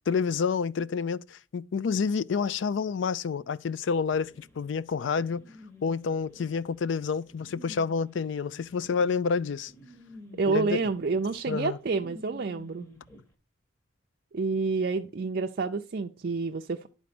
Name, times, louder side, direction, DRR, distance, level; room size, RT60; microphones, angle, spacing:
voice 1, 0.1-5.4 5.8-9.7 10.5-10.8 11.5-11.8, left 5 dB, 70° left, 0.4 m, -29 dB
sound 1, 4.2-13.2, left 1 dB, 15° left, 1.1 m, -51 dB
voice 2, 10.4-12.9 14.3-16.9, right 4 dB, 55° right, 0.5 m, -29 dB
11.0 x 4.2 x 6.0 m
head